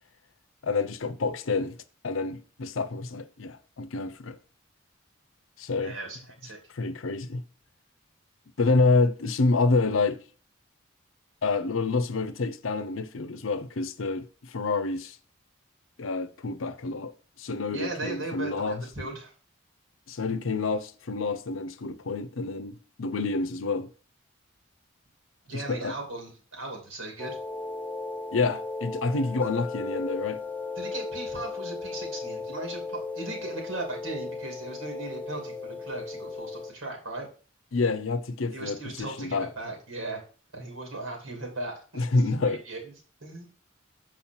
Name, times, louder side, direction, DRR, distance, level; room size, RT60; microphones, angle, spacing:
voice 1, 0.6-1.8 2.0-4.4 5.6-6.0 6.7-7.4 8.6-10.2 11.4-15.2 16.0-17.1 17.4-19.1 20.1-23.9 25.5-26.0 28.3-30.4 37.7-39.5 42.0-42.6, left 3 dB, 75° left, 0.7 m, -28 dB
voice 2, 5.8-6.6 17.7-19.3 25.5-27.4 30.8-37.3 38.5-40.2 40.5-42.9 43.2-43.5, right 2 dB, 85° right, 2.7 m, -38 dB
sound 1, 27.2-36.7, left 3 dB, 10° left, 0.4 m, -36 dB
7.2 x 4.8 x 6.0 m
head